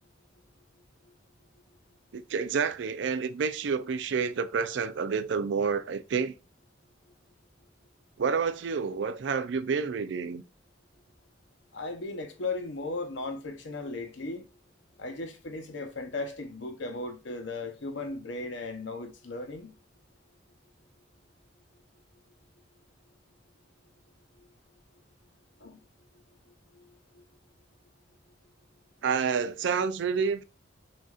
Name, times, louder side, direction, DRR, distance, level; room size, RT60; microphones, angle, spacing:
voice 1, 2.1-6.3 8.2-10.4 29.0-30.4, right 5 dB, 70° right, 0.4 m, -29 dB
voice 2, 11.7-14.4 15.0-19.7 24.4-24.5 25.6-25.8 26.7-27.2, left 3 dB, 75° left, 0.8 m, -37 dB
6.2 x 2.5 x 2.4 m
head